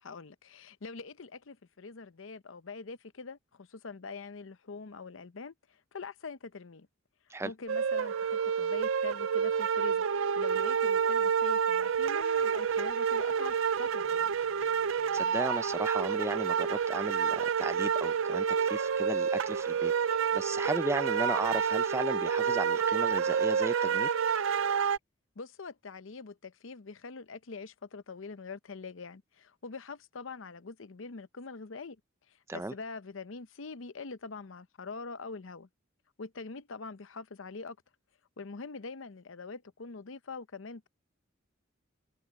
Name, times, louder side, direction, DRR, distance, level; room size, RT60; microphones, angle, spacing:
voice 1, 0.0-6.9 7.4-10.0 10.4-14.3 25.4-32.0 32.3-35.7 36.2-37.8 38.4-40.9, left 4 dB, 75° left, 0.7 m, -44 dB
sound 1, 7.7-25.0, right 7 dB, 75° right, 0.5 m, -29 dB
voice 2, 15.1-19.9 20.3-24.1 32.5-32.7, right 2 dB, 15° right, 0.5 m, -35 dB
head